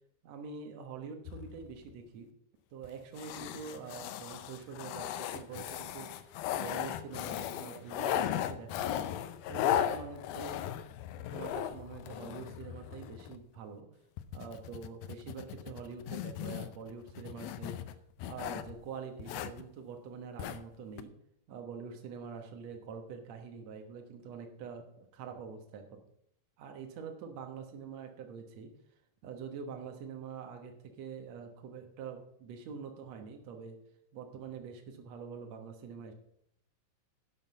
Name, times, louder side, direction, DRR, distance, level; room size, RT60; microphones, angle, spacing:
voice 1, 0.2-2.3 2.7-9.1 9.5-10.6 11.3-13.9 14.3-17.8 18.2-21.1 21.5-26.0 26.6-28.7 29.2-33.8 34.1-36.1, right 6 dB, 85° right, 4 dB, 1.5 m, -45 dB
sound 1, 1.3-1.9 2.8-2.9 3.2-13.4 14.2-18.7 19.2-19.6 20.4-20.6 21.0-21.1, left 11 dB, 85° left, 2.1 m, -37 dB
11.0 x 7.6 x 5.5 m, 0.74 s
omnidirectional pair, 5.1 m